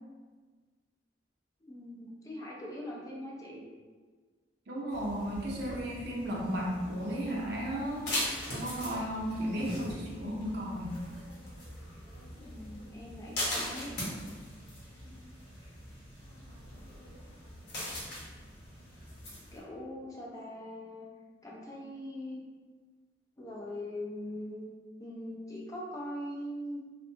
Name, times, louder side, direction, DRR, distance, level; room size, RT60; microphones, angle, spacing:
voice 1, 1.6-3.6 12.3-13.9 19.5-21.1 21.4-22.4 23.4-24.7 25.0-26.8, left 1 dB, 20° left, -3 dB, 0.4 m, -41 dB
voice 2, 4.7-8.1 8.5-10.9, equal, 65° right, -3 dB, 0.6 m, -34 dB
sound 1, 4.9-19.6, left 1 dB, 65° left, 0.9 m, -41 dB
2.6 x 2.1 x 2.7 m, 1.4 s
head